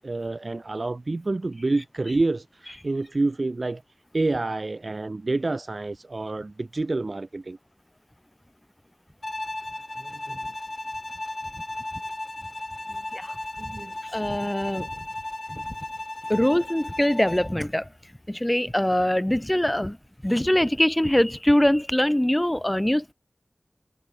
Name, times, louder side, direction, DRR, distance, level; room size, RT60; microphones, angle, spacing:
voice 1, 0.0-3.8 4.1-7.6 10.0-10.4 12.9-13.0 13.6-13.9, right 2 dB, 55° right, 4.7 m, -28 dB
Bowed string instrument, 9.2-17.6, left 2 dB, 40° left, 2.9 m, -35 dB
voice 2, 14.1-14.9 15.5-15.6 16.3-17.9 18.3-20.0 20.2-23.1, left 1 dB, 15° left, 0.8 m, -23 dB
wide cardioid pair, 45°, 0 cm